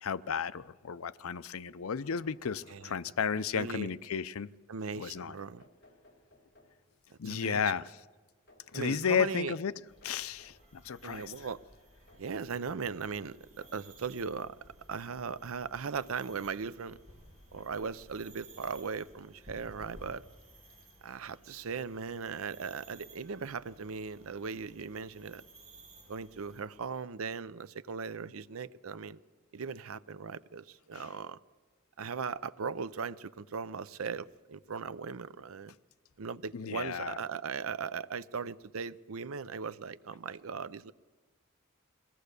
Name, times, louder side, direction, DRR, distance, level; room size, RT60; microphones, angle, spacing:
voice 1, 0.0-4.5 5.0-5.4 7.2-7.8 8.7-9.7 10.0-11.3 30.9-31.1 36.5-37.2, left 6 dB, 80° left, 0.6 m, -33 dB
sound 1, 1.7-3.4 4.9-7.0 8.5-10.7 12.1-14.0 14.8-14.9 16.2-16.3 16.7-16.8, left 1 dB, 50° left, 3.8 m, -62 dB
voice 2, 3.3-3.9 4.7-5.6 7.2-7.7 8.7-9.6 11.0-11.6 12.2-14.6 14.9-17.0 17.5-20.2 21.0-25.4 26.1-29.2 29.5-31.4 32.0-35.7 36.2-40.9, right 5 dB, 80° right, 0.6 m, -38 dB
sound 2, 9.9-26.6, right 1 dB, 35° right, 5.2 m, -57 dB
22.5 x 17.5 x 6.7 m
head